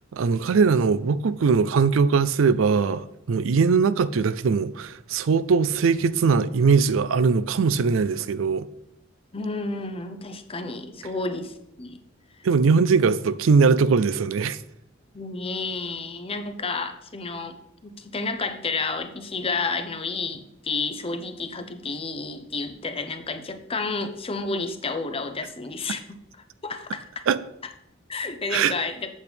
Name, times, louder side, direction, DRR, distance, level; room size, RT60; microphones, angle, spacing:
voice 1, 0.1-8.7 12.4-14.6 27.3-27.4 28.5-28.7, right 5 dB, 75° right, 0.4 m, -21 dB
voice 2, 9.3-12.0 15.1-17.5 17.8-26.2 26.6-27.2 28.1-29.1, left 3 dB, 30° left, 0.8 m, -31 dB
8.4 x 8.1 x 3.4 m
head